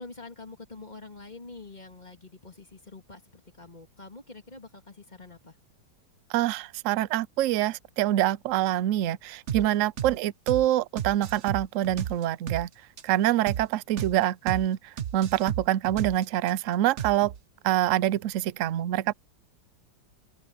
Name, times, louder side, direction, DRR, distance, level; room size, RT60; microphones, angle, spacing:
voice 1, 0.0-5.6 10.1-10.3, left 3 dB, 20° left, 2.8 m, -46 dB
voice 2, 6.3-12.7 13.0-17.3 17.6-19.1, right 13 dB, 85° right, 0.6 m, -25 dB
sound 1, 9.5-9.7 10.0-10.2 10.5-10.7 11.0-12.7 13.0-13.1 13.5-13.7 14.0-14.2 14.5-14.7 15.0-16.5 17.0-17.4, right 9 dB, 50° right, 1.0 m, -33 dB
open air
omnidirectional pair, 2.0 m